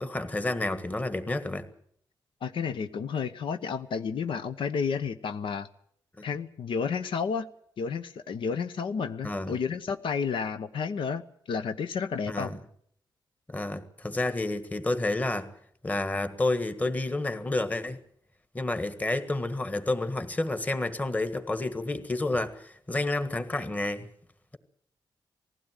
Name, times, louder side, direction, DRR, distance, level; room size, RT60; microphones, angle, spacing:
voice 1, 0.0-1.7 9.2-9.6 12.3-12.6 13.5-15.5 15.8-18.0 18.5-24.1, left 2 dB, 20° left, 1.6 m, -30 dB
voice 2, 2.4-5.7 6.2-7.5 7.8-11.2 11.5-12.5, left 6 dB, 85° left, 1.0 m, -31 dB
19.5 x 16.0 x 9.1 m
wide cardioid pair, 115°, 8 cm